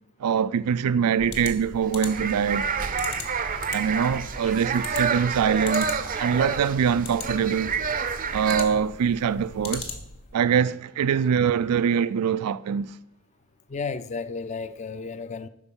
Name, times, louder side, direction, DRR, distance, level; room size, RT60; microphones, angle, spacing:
voice 1, 0.2-2.7 3.7-7.7 8.3-9.9 10.3-12.9, right 7 dB, 90° right, 0.4 m, -23 dB
sound 1, 1.2-10.3, left 4 dB, 75° left, 1.4 m, -40 dB
sound 2, 1.9-8.6, right 5 dB, 35° right, 0.5 m, -29 dB
voice 2, 13.7-15.5, left 4 dB, 30° left, 0.4 m, -33 dB
11.5 x 4.5 x 5.3 m
head